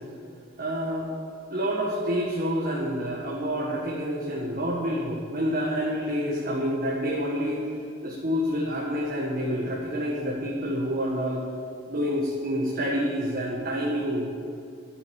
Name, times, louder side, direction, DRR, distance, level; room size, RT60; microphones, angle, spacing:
voice 1, 0.6-1.1 1.5-7.7 8.0-11.4 11.9-14.3, equal, 50° right, -3 dB, 1.7 m, -28 dB
13.5 x 8.1 x 7.1 m, 2.5 s
head